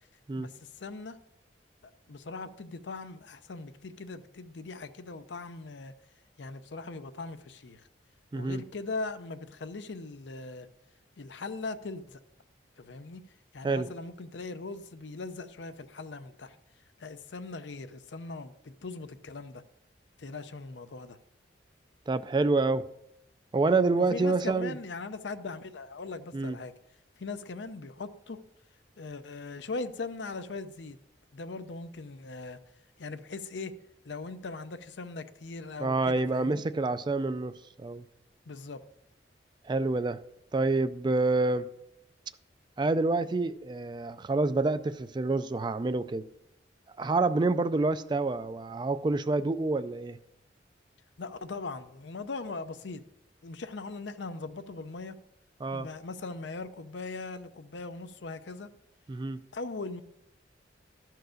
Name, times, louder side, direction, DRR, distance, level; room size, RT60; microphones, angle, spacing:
voice 1, 0.4-1.2 1.8-5.9 6.4-7.9 8.3-10.7 11.2-12.2 12.8-13.2 13.5-16.6 17.0-19.6 20.2-21.2 24.0-26.7 27.2-28.4 29.0-31.0 31.3-32.6 33.0-33.7 34.0-36.6 38.5-38.8 51.2-53.0 53.4-55.2 55.7-58.7 59.5-60.0, left 3 dB, 75° left, 0.6 m, -40 dB
voice 2, 22.1-22.9 23.5-24.7 26.3-26.6 35.8-37.5 37.8-38.0 39.7-40.2 40.5-41.7 42.8-46.2 47.0-50.2 55.6-55.9 59.1-59.4, right 3 dB, 25° right, 0.3 m, -27 dB
12.5 x 4.7 x 6.3 m
head